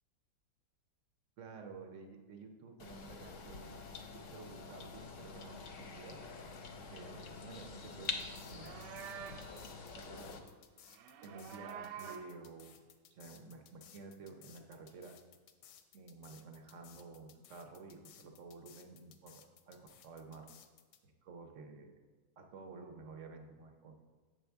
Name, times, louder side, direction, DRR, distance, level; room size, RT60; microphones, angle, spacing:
voice 1, 1.4-3.8 4.1-6.2 6.8-8.9 9.5-9.7 9.9-10.5 11.2-12.8 13.1-15.1 15.9-20.5 21.0-21.9 22.4-23.9, right 4 dB, 60° right, 4 dB, 0.8 m, -52 dB
sound 1, 2.8-10.4, left 4 dB, 60° left, 0.8 m, -46 dB
sound 2, 7.9-21.0, left 10 dB, 90° left, 1.3 m, -60 dB
Livestock farm animals working animals, 8.4-9.5 10.8-12.3, right 9 dB, 80° right, 1.2 m, -48 dB
7.7 x 6.4 x 3.4 m, 1.4 s
omnidirectional pair, 1.9 m